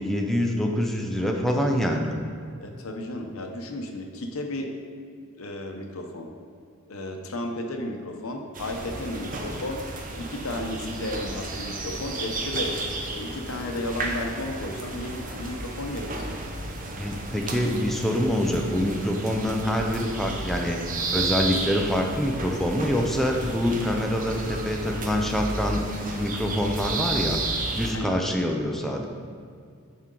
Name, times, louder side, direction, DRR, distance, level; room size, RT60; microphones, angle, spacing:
voice 1, 0.0-2.1 17.0-20.8 21.1-25.9 26.2-27.4 27.7-29.1, equal, ahead, 1 dB, 0.5 m, -25 dB
voice 2, 2.6-4.7 5.4-6.3 6.9-9.8 10.2-12.9 13.1-16.1 27.9-28.2, left 1 dB, 90° left, 4 dB, 0.8 m, -33 dB
sound 1, 8.5-27.9, right 2 dB, 40° right, 0.7 m, -32 dB
9.2 x 4.3 x 3.8 m, 2.3 s
head